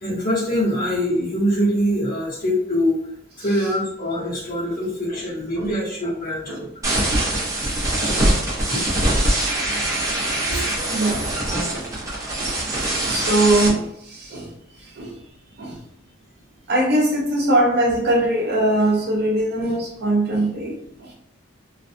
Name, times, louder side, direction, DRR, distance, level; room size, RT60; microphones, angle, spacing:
voice 1, 0.0-3.0 3.4-6.7 8.2-8.3 8.7-8.8, equal, 45° left, -7 dB, 1.2 m, -23 dB
sound 1, 6.8-13.7, right 1 dB, 15° right, 0.7 m, -23 dB
voice 2, 10.9-11.2 11.7-11.9 12.4-12.5 13.0-13.8 14.3-14.5 15.0-15.1 15.6-15.7 16.7-20.7, right 1 dB, 55° right, -1 dB, 0.6 m, -20 dB
2.5 x 2.3 x 2.5 m, 0.72 s
head